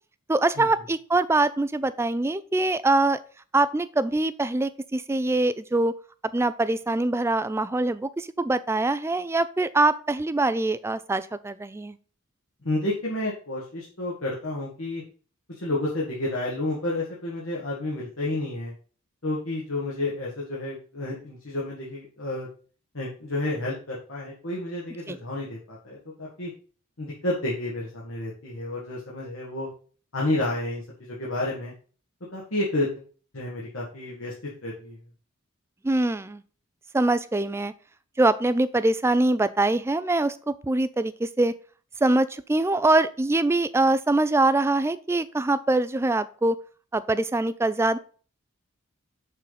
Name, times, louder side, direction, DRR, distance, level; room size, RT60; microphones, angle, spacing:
voice 1, 0.3-3.2 3.5-5.9 6.3-12.0 25.1-25.2 35.8-36.4 36.9-37.7 38.2-41.5 42.0-46.6 46.9-48.0, right 2 dB, 10° right, 14 dB, 0.3 m, -23 dB
voice 2, 12.6-15.0 15.5-18.7 19.2-22.5 22.9-26.5 27.0-29.7 30.1-31.7 32.3-32.9 33.3-35.0, left 2 dB, 70° left, -4 dB, 1.6 m, -30 dB
6.4 x 3.9 x 5.6 m, 0.41 s
head